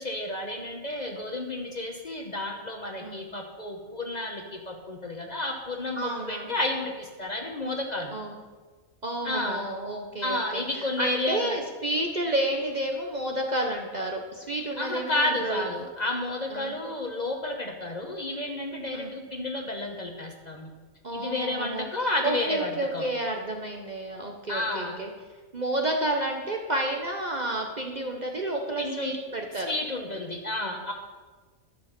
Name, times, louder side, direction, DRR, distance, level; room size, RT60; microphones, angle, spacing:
voice 1, 0.0-8.1 9.2-9.7 10.2-11.6 14.8-20.7 21.1-23.1 24.5-25.0 28.8-29.1 29.5-30.9, left 2 dB, 35° left, 2 dB, 1.0 m, -31 dB
voice 2, 5.9-6.5 8.1-8.4 9.0-15.7 16.5-16.7 18.9-19.1 21.0-21.9 22.2-25.1 25.5-29.7, right 1 dB, 40° right, 1 dB, 0.8 m, -30 dB
12.0 x 5.4 x 6.6 m, 1.4 s
omnidirectional pair, 1.4 m